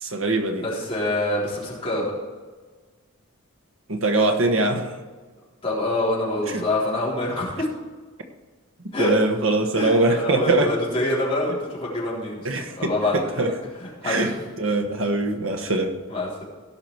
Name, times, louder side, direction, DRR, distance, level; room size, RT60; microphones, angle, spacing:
voice 1, 0.0-0.6 3.9-4.9 6.5-6.6 9.0-10.7 12.4-12.9 13.4-13.5 14.0-14.3 14.6-15.9, right 2 dB, 70° right, 1.5 m, -22 dB
voice 2, 0.6-2.1 5.6-7.7 8.9-9.1 9.7-12.5 12.8-13.1 13.8-14.3 16.1-16.4, left 1 dB, 25° left, 3.8 m, -25 dB
17.0 x 6.0 x 4.7 m
head